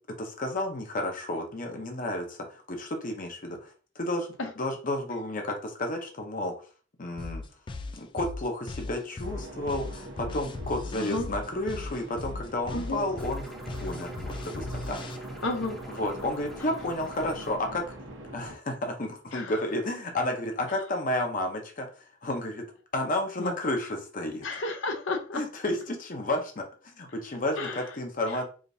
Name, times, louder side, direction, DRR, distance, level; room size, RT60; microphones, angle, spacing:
voice 1, 0.2-4.3 4.6-6.5 7.0-7.4 7.9-13.5 13.8-15.3 16.0-17.8 18.3-22.6 22.9-24.5 25.3-28.5, left 1 dB, 45° left, 3 dB, 0.8 m, -32 dB
sound 1, 7.2-15.2, left 3 dB, 25° left, 0.3 m, -38 dB
sound 2, 9.2-18.6, right 1 dB, 80° right, 0.9 m, -42 dB
voice 2, 11.0-11.3 12.7-13.0 15.4-15.8 19.3-19.6 23.4-23.5 24.4-25.4 27.6-27.8 28.3-28.4, left 2 dB, 80° left, 3 dB, 0.7 m, -32 dB
sound 3, 13.2-17.6, equal, ahead, 0.7 m, -50 dB
5.0 x 2.6 x 2.6 m, 0.38 s
head